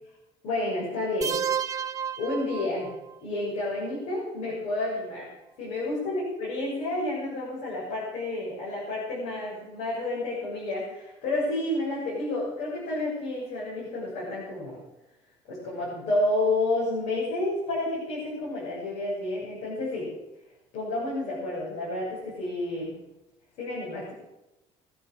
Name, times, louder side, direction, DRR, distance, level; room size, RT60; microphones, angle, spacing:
voice 1, 0.4-1.4 2.2-2.9 3.2-5.3 5.6-14.8 15.5-20.1 20.7-22.9 23.6-24.1, left 2 dB, 75° left, -5 dB, 7.0 m, -30 dB
sound 1, 1.2-3.2, right 8 dB, 30° right, 0.5 m, -31 dB
21.5 x 9.3 x 6.5 m, 0.98 s
cardioid pair, 170°, 11 cm